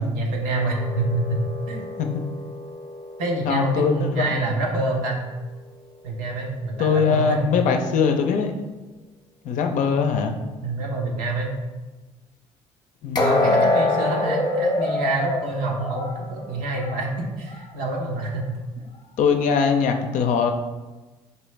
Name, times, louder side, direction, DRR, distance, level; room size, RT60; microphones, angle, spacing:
voice 1, 0.0-1.4 1.7-1.9 3.2-5.2 6.0-7.4 10.6-11.5 13.2-18.5, right 2 dB, 75° right, 0 dB, 0.9 m, -26 dB
sound 1, 0.7-3.8 13.1-17.1 17.4-17.6 18.2-18.3, left 2 dB, 30° left, 0.8 m, -26 dB
voice 2, 3.4-4.4 6.8-8.5 9.4-10.4 13.0-13.7 19.2-20.5, left 6 dB, 65° left, 5 dB, 0.5 m, -22 dB
4.3 x 3.0 x 3.3 m, 1.2 s
hypercardioid pair, 60°, 14 cm